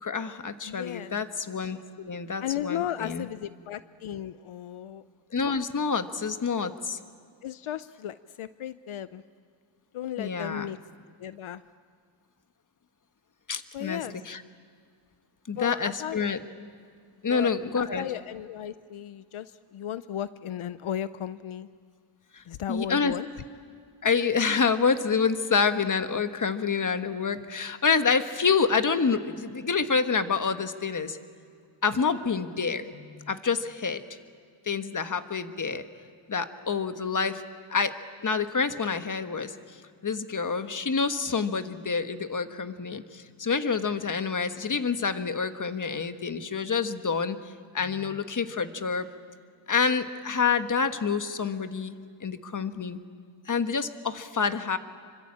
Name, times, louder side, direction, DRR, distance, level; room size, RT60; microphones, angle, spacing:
voice 1, 0.0-3.3 5.3-7.0 10.2-10.7 13.5-14.4 15.5-16.4 17.2-18.0 22.3-22.4 22.7-23.1 24.0-31.2 31.8-34.0 34.7-35.8 36.3-37.4 37.7-38.0 38.2-39.6 40.0-47.4 47.7-49.1 49.7-51.9 52.2-53.0 53.5-54.8, left 5 dB, 40° left, 9 dB, 1.4 m, -27 dB
voice 2, 0.7-1.1 2.4-5.0 7.4-9.2 9.9-10.8 11.2-11.6 13.7-14.1 15.6-16.2 17.3-21.7 22.5-23.3, left 11 dB, 80° left, 14 dB, 0.7 m, -35 dB
26.5 x 25.0 x 8.7 m, 2.2 s
wide cardioid pair, 105°, 48 cm